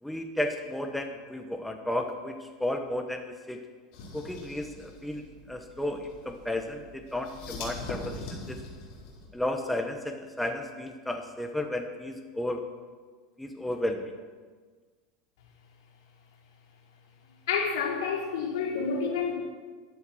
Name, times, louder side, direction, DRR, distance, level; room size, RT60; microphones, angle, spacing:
voice 1, 0.0-3.7 4.1-8.6 9.3-12.6 13.4-14.1, left 1 dB, 5° left, 4 dB, 1.1 m, -33 dB
sound 1, 3.9-9.3, left 3 dB, 55° left, 5.0 m, -42 dB
voice 2, 17.5-19.3, left 5 dB, 80° left, -5 dB, 5.0 m, -29 dB
12.5 x 12.0 x 6.3 m, 1.5 s
supercardioid pair, 120°, 2 cm